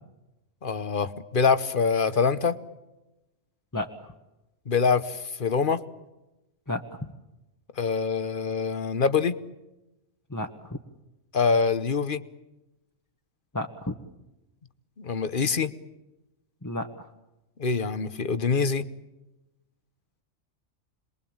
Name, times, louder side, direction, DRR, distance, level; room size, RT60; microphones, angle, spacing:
voice 1, 0.6-2.6 4.7-5.8 7.8-9.4 11.3-12.2 15.0-15.7 17.6-18.8, left 5 dB, 40° left, 14 dB, 1.2 m, -25 dB
voice 2, 3.7-4.1 6.7-6.8 10.3-10.5 13.5-13.9 16.6-16.9, left 1 dB, 15° left, 2 dB, 1.2 m, -31 dB
27.0 x 21.5 x 8.8 m, 0.99 s
omnidirectional pair, 1.4 m